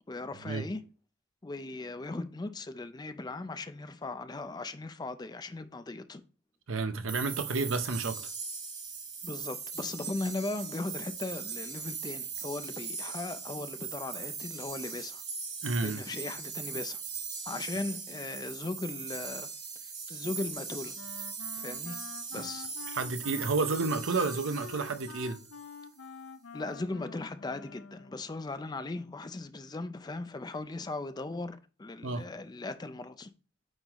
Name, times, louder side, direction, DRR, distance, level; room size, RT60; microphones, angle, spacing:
voice 1, 0.1-0.9 1.4-6.2 9.2-15.2 15.8-17.0 17.4-19.5 19.8-21.0 21.6-22.0 22.3-22.7 26.5-33.3, left 2 dB, 20° left, 0.4 m, -38 dB
voice 2, 6.7-8.2 15.6-16.0 22.9-25.4 32.0-32.2, right 3 dB, 75° right, 0.7 m, -30 dB
sound 1, 7.1-25.8, right 5 dB, 30° right, 2.0 m, -40 dB
Wind instrument woodwind instrument, 20.9-28.3, left 5 dB, 70° left, 0.5 m, -47 dB
9.0 x 3.9 x 3.0 m
head